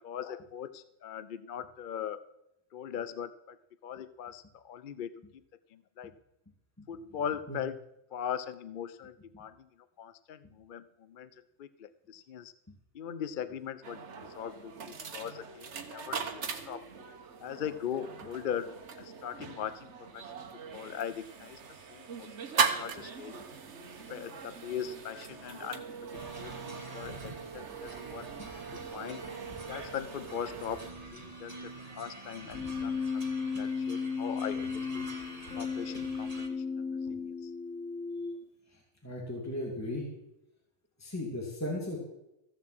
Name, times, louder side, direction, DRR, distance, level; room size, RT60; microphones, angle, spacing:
voice 1, 0.0-2.2 2.7-3.6 3.8-5.1 5.7-6.1 6.9-7.8 8.1-9.7 10.0-11.3 11.6-12.5 12.9-14.0 14.3-16.9 17.4-20.3 20.7-21.6 21.9-23.4 24.1-25.8 26.3-28.3 28.9-29.2 29.7-31.7 32.0-35.0 35.5-37.5, left 8 dB, 55° left, 14 dB, 0.6 m, -40 dB
sound 1, 13.8-30.9, right 5 dB, 70° right, 1.5 m, -39 dB
sound 2, 26.1-36.5, right 2 dB, 30° right, 1.7 m, -47 dB
Keyboard (musical), 32.5-38.5, left 5 dB, 90° left, 1.8 m, -35 dB
voice 2, 38.7-40.1 41.0-42.0, left 1 dB, 15° left, -2 dB, 2.5 m, -36 dB
15.0 x 7.4 x 7.7 m, 0.88 s
omnidirectional pair, 1.2 m